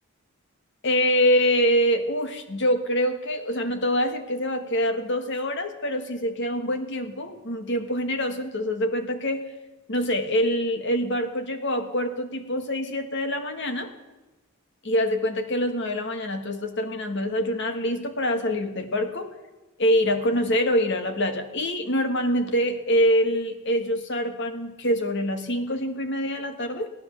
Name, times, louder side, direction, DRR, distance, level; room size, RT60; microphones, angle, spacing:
voice 1, 0.8-9.4 9.9-13.9 14.8-19.3 19.8-26.9, equal, 55° left, 7 dB, 1.4 m, -25 dB
17.0 x 10.5 x 7.1 m, 1.1 s
head